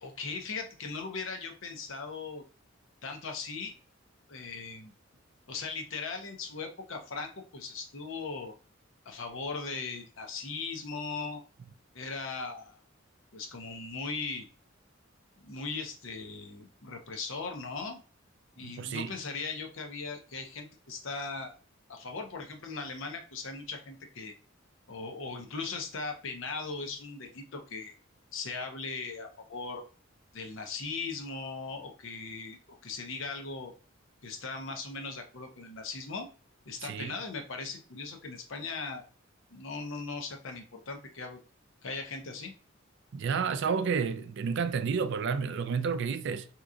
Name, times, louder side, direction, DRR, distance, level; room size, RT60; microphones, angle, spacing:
voice 1, 0.0-2.4 3.0-3.7 4.3-4.9 5.5-8.5 9.1-11.4 11.9-12.8 13.3-14.5 15.4-18.0 18.6-21.5 21.9-24.3 24.9-27.9 28.3-29.8 30.3-33.7 34.2-36.3 36.7-39.0 39.5-41.4 41.8-42.5, left 4 dB, 70° left, 0.7 m, -38 dB
voice 2, 18.6-19.1 36.8-37.1 43.1-46.5, right 6 dB, 60° right, 0.4 m, -30 dB
3.7 x 2.9 x 2.4 m
head